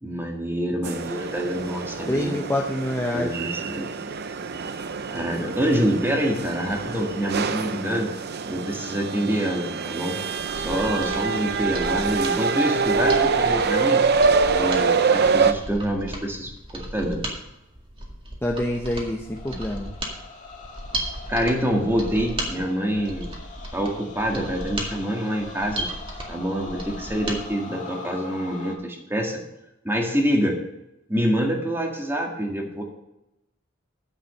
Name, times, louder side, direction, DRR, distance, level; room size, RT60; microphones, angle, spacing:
voice 1, 0.0-2.4 3.1-3.9 5.1-8.1 8.5-10.2 10.5-14.0 14.5-17.2 21.3-23.3 23.7-25.9 26.3-29.4 29.8-30.6 31.1-32.8, equal, 10° right, 1 dB, 1.9 m, -26 dB
sound 1, 0.8-15.5, right 5 dB, 55° right, 0.6 m, -25 dB
voice 2, 2.1-3.4 18.4-19.9, left 1 dB, 10° left, 0 dB, 0.8 m, -26 dB
Mechanisms, 10.3-27.4 27.7-27.8, right 1 dB, 25° right, 2.0 m, -35 dB
sound 2, 19.2-28.8, left 3 dB, 40° left, 1.8 m, -42 dB
9.9 x 7.3 x 6.6 m, 0.90 s
head